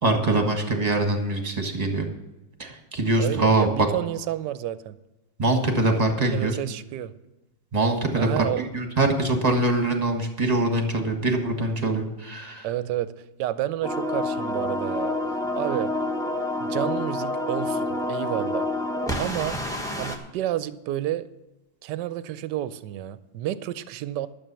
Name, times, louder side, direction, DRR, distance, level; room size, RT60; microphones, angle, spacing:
voice 1, 0.0-2.1 2.6-3.9 5.4-6.6 7.7-8.3 8.6-12.7, right 2 dB, 25° right, 4 dB, 1.4 m, -23 dB
voice 2, 3.2-5.0 6.2-7.1 8.2-8.6 12.6-15.2 15.5-15.9 16.6-18.7 19.2-19.6 20.0-21.3 21.8-24.3, right 13 dB, 75° right, 14 dB, 1.2 m, -30 dB
sound 1, 13.8-20.2, left 1 dB, ahead, 1.0 m, -28 dB
12.5 x 7.4 x 6.9 m, 1.0 s
omnidirectional pair, 2.0 m